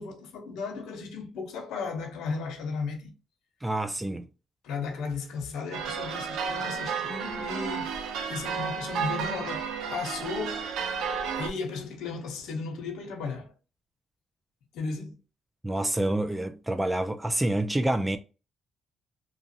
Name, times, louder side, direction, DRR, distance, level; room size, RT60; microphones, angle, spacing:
voice 1, 0.0-3.1 4.6-8.0 8.3-10.7 11.4-13.5 14.7-15.2, left 4 dB, 85° left, 0.8 m, -35 dB
voice 2, 3.6-4.3 15.6-18.2, right 1 dB, 10° right, 0.3 m, -27 dB
sound 1, 5.7-11.5, right 6 dB, 85° right, 0.5 m, -32 dB
2.8 x 2.4 x 2.7 m
cardioid pair, 90°, 0 cm